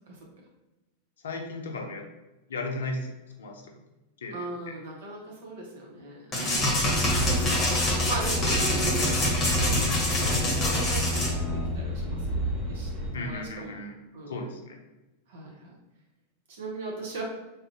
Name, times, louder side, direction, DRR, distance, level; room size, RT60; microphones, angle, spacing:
voice 1, 1.2-2.0 2.5-3.1 3.4-3.6 4.2-4.5 6.5-6.9 13.1-14.0 14.3-14.8, left 2 dB, 65° left, 2 dB, 0.5 m, -35 dB
voice 2, 4.3-6.3 7.1-9.9 10.2-13.8 14.1-14.5 15.3-15.7 16.6-17.2, right 2 dB, 60° right, -2 dB, 0.7 m, -39 dB
sound 1, 6.3-11.3, left 1 dB, 25° left, 0.9 m, -26 dB
sound 2, 6.6-13.1, right 1 dB, 30° right, 1.3 m, -32 dB
sound 3, 6.8-13.4, left 3 dB, 10° right, 0.4 m, -34 dB
3.4 x 2.4 x 2.7 m, 1.0 s
figure-of-eight pair, 90°, 0 cm